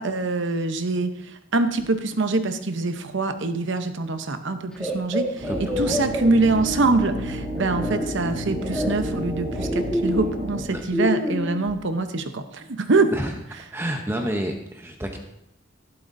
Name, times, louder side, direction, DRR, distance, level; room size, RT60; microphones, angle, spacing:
voice 1, 0.0-13.1, right 3 dB, 65° right, 8 dB, 0.8 m, -24 dB
sound 1, 4.7-7.0 7.5-8.1 8.6-11.7, left 1 dB, 5° left, 1.8 m, -28 dB
sound 2, 5.4-10.6, equal, 30° right, 3.0 m, -31 dB
voice 2, 5.5-6.0 10.7-10.8 13.1-13.4 13.7-15.2, equal, 10° right, 3 dB, 0.8 m, -29 dB
12.0 x 11.5 x 2.7 m, 0.80 s
head